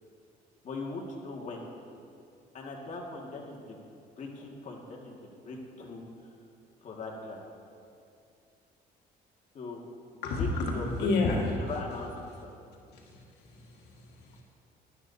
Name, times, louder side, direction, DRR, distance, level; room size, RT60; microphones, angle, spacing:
voice 1, 0.6-1.6 2.5-3.8 4.2-6.0 6.8-7.4 9.5-9.8 10.1-12.1 12.4-12.6, left 3 dB, 45° left, -1 dB, 2.0 m, -40 dB
voice 2, 10.2-11.5 12.9-14.4, left 3 dB, 80° left, -2 dB, 1.8 m, -31 dB
19.0 x 11.0 x 2.8 m, 2.5 s
cardioid pair, 110°, 17 cm